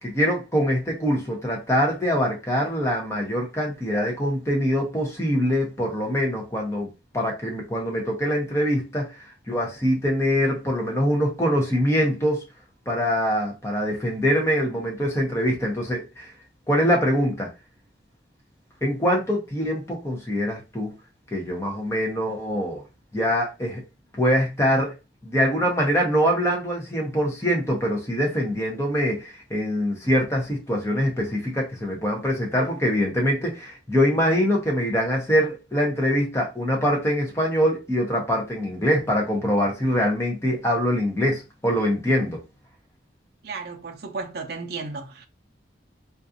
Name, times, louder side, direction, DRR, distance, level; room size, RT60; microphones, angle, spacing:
voice 1, 0.0-6.9 7.1-9.1 9.5-12.4 12.9-16.3 16.7-17.5 18.8-20.9 21.3-22.8 23.1-23.8 24.2-24.9 25.2-42.4, equal, 15° left, 0.7 m, -23 dB
voice 2, 43.4-45.3, right 4 dB, 55° right, 0.5 m, -34 dB
3.9 x 2.4 x 2.6 m
head